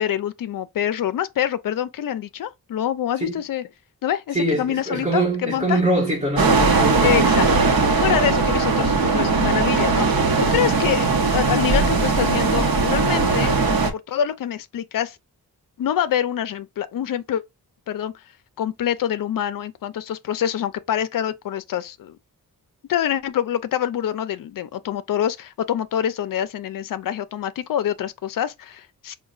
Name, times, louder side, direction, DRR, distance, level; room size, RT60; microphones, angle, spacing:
voice 1, 0.0-3.7 4.0-5.8 7.0-13.5 13.9-15.2 15.8-17.4 17.9-18.1 18.6-22.2 22.9-29.1, left 10 dB, 65° left, 0.5 m, -26 dB
voice 2, 4.3-7.3, right 1 dB, 20° right, 1.4 m, -23 dB
sound 1, 6.4-13.9, right 4 dB, 70° right, 0.8 m, -19 dB
4.9 x 2.2 x 2.4 m
wide cardioid pair, 165°, 36 cm